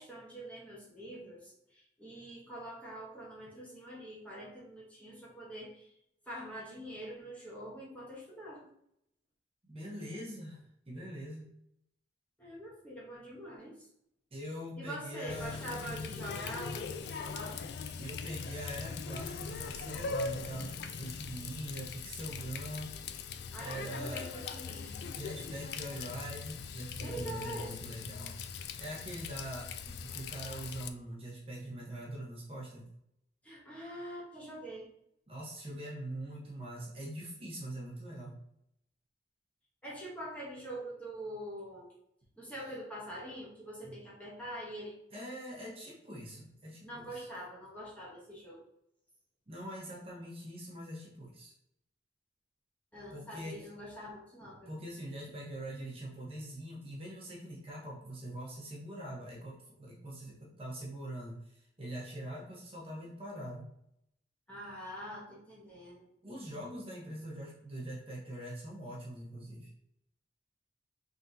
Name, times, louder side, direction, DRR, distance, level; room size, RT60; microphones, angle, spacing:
voice 1, 0.0-5.9 6.3-8.7 12.4-13.9 14.8-17.6 23.5-25.0 27.0-27.9 33.4-34.9 39.8-41.9 42.4-44.9 46.8-48.6 52.9-54.7 64.5-66.1, right 1 dB, 10° left, -6 dB, 1.1 m, -44 dB
voice 2, 9.6-11.5 14.3-15.6 18.0-22.9 23.6-24.3 25.1-28.4 28.8-32.9 35.3-38.3 45.1-47.3 49.5-51.5 53.1-53.7 54.4-63.7 66.2-69.7, right 1 dB, 35° right, -3 dB, 1.0 m, -43 dB
Water tap faucet, 15.3-30.9, left 5 dB, 70° left, 0.3 m, -41 dB
3.8 x 3.6 x 2.7 m, 0.75 s
head